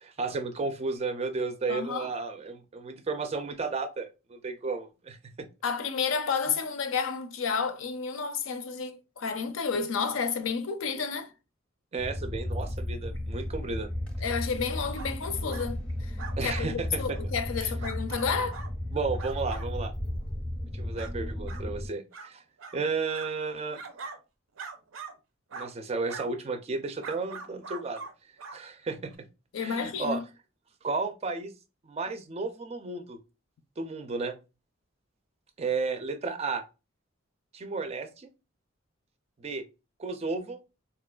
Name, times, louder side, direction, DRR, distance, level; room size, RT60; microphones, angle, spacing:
voice 1, 0.0-5.5 11.9-13.9 16.4-17.2 17.6-17.7 18.9-19.9 20.7-22.4 22.7-23.8 25.5-28.0 28.5-29.1 29.6-30.2 30.8-31.5 31.8-33.2 33.8-34.3 35.6-36.6 37.5-38.3 39.4-39.6 40.0-40.6, right 4 dB, 30° right, 0.4 m, -33 dB
voice 2, 1.7-2.1 5.6-11.3 14.2-16.1 16.4-18.6 29.5-30.2, left 5 dB, 80° left, 0.5 m, -31 dB
sound 1, 12.0-21.9, left 1 dB, 5° left, 0.6 m, -34 dB
sound 2, 14.9-15.1 15.5-15.7 16.2-16.6 17.1-17.2 17.8-18.7 19.2-19.7 20.2-20.3 21.0-21.1 21.5-21.6 22.1-22.3 22.6-22.8 23.1-24.2 24.6-25.1 25.5-25.7 26.1-26.3 27.0-28.1 28.4-28.6 29.1-29.2, right 5 dB, 85° right, 0.5 m, -42 dB
4.1 x 2.3 x 2.2 m
head